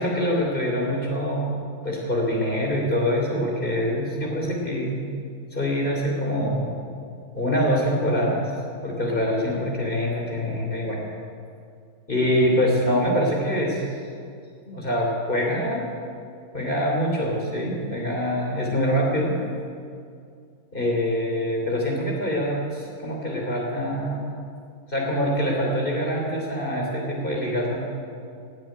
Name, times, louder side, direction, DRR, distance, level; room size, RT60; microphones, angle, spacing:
voice 1, 0.0-1.6 1.8-5.1 5.5-6.8 7.3-8.4 8.8-11.0 12.1-13.8 14.6-15.9 16.5-19.3 20.7-24.3 24.9-27.8, equal, 35° left, -1 dB, 3.3 m, -24 dB
17.0 x 7.6 x 9.7 m, 2.3 s
omnidirectional pair, 1.6 m